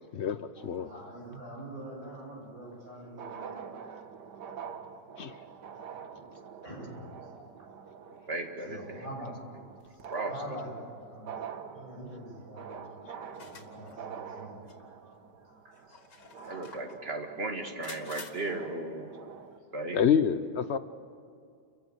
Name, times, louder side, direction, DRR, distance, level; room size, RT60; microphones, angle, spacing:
voice 1, 0.1-0.9 5.2-5.4 13.0-13.1 19.9-20.8, left 7 dB, 60° left, 12 dB, 0.7 m, -27 dB
sound 1, 0.6-1.6 2.8-2.9 3.1-19.6, right 7 dB, 75° right, 1.7 m, -46 dB
voice 2, 0.8-3.9 6.0-6.3 6.6-7.7 8.6-9.4 9.9-13.0 13.3-14.6 15.0-15.6 15.9-16.0 16.3-16.9, right 1 dB, 55° right, -3 dB, 8.2 m, -45 dB
voice 3, 8.1-9.3 10.1-10.6 16.4-19.1 19.7-20.0, right 2 dB, 35° right, 3 dB, 2.2 m, -36 dB
sound 2, 13.3-14.0 14.7-14.8 15.8-17.0 17.8-18.3, left 4 dB, 75° left, 2.6 m, -47 dB
29.5 x 15.5 x 9.2 m, 2.3 s
omnidirectional pair, 1.8 m